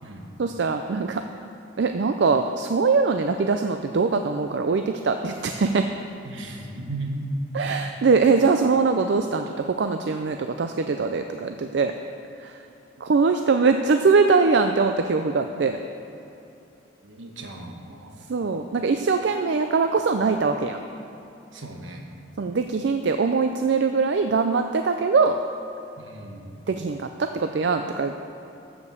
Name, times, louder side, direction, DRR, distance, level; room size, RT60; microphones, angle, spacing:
voice 1, 0.4-1.2 1.8-5.9 7.5-11.9 12.4-12.6 13.0-15.8 18.3-20.8 22.4-25.4 26.7-28.1, right 4 dB, 60° right, 6 dB, 0.4 m, -22 dB
voice 2, 6.2-7.3 17.0-18.2 21.5-22.0 26.0-26.6, right 2 dB, 75° right, 2 dB, 1.3 m, -36 dB
13.5 x 5.2 x 6.8 m, 2.8 s
head